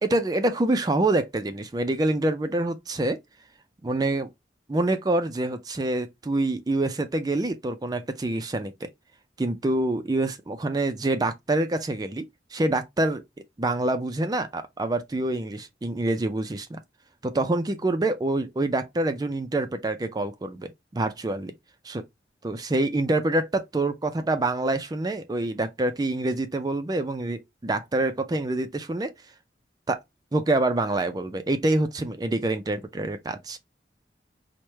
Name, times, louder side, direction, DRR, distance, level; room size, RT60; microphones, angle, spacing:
voice 1, 0.0-3.2 3.8-4.3 4.7-8.9 9.4-12.3 12.5-13.2 13.6-16.8 17.2-21.5 21.8-22.0 22.4-29.1 29.9-30.0 30.3-33.6, right 2 dB, 20° right, 0.4 m, -26 dB
4.6 x 2.1 x 3.2 m
head